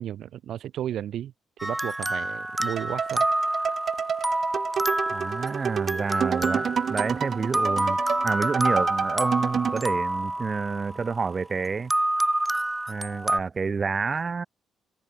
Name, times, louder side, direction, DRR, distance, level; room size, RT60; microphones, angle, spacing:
voice 1, 0.0-1.3 1.6-3.3, right 11 dB, 70° right, 0.8 m, -33 dB
sound 1, 1.6-11.3 11.9-13.4, right 1 dB, 10° right, 1.2 m, -28 dB
sound 2, 2.8-9.9, right 7 dB, 55° right, 1.2 m, -29 dB
voice 2, 5.1-8.0 8.2-11.9 12.9-14.4, right 5 dB, 35° right, 2.1 m, -29 dB
cardioid pair, 90°, 0 cm